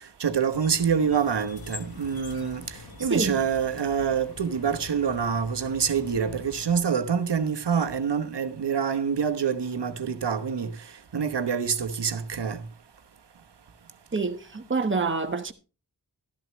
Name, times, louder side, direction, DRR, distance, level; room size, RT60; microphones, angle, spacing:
voice 1, 0.2-2.6 3.0-10.7 11.1-12.6, right 7 dB, 85° right, 1.1 m, -26 dB
sound 1, 0.5-6.8, left 4 dB, 60° left, 1.2 m, -44 dB
voice 2, 3.0-3.4 14.1-15.5, right 4 dB, 30° right, 1.1 m, -27 dB
12.5 x 12.5 x 3.1 m
wide cardioid pair, 60°, 40 cm